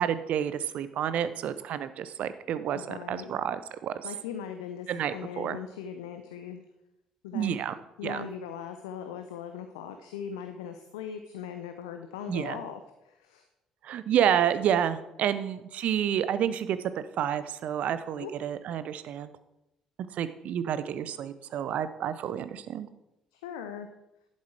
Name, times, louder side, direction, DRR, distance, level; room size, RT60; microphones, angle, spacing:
voice 1, 0.0-3.9 4.9-5.6 7.3-7.8 8.0-8.3 12.3-12.6 13.8-19.3 20.2-22.9, right 9 dB, 55° right, 13 dB, 0.6 m, -29 dB
voice 2, 2.7-3.3 4.0-6.6 7.2-7.6 8.0-13.5 18.2-18.3 23.3-23.9, left 8 dB, 75° left, 8 dB, 0.6 m, -40 dB
11.0 x 7.5 x 4.5 m, 0.90 s
figure-of-eight pair, 45°, 3 cm